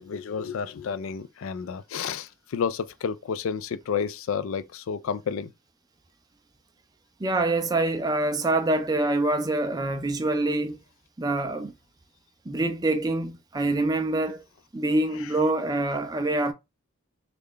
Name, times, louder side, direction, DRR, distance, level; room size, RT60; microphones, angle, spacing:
voice 1, 0.0-5.5 15.2-15.3, left 6 dB, 65° left, 0.3 m, -31 dB
voice 2, 7.2-10.8 11.2-11.7 12.5-14.4 14.7-16.5, right 2 dB, 20° right, 0.4 m, -25 dB
3.3 x 2.4 x 3.6 m
head